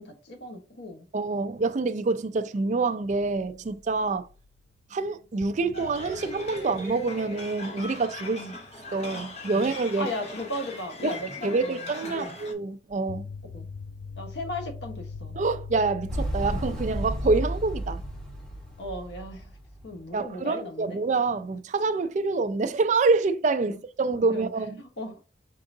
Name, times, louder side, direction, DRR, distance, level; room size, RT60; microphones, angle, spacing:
voice 1, 0.0-1.1 8.4-8.5 10.0-12.4 13.5-13.7 14.2-15.3 18.8-19.5 19.8-21.0 23.7-23.8 24.1-24.5 24.8-25.2, left 1 dB, 80° left, 1.1 m, -36 dB
voice 2, 1.1-4.3 4.9-8.4 8.9-10.1 11.0-13.2 15.3-18.0 20.1-24.8, right 3 dB, 40° right, 0.4 m, -26 dB
sound 1, 3.1-4.6 4.9-5.0 5.4-9.8 12.9-20.0, left 4 dB, 60° left, 0.4 m, -43 dB
sound 2, 5.7-12.5, left 1 dB, 40° left, 1.0 m, -40 dB
Motorcycle, 16.1-20.0, right 1 dB, 5° left, 1.0 m, -32 dB
4.6 x 3.7 x 2.6 m
head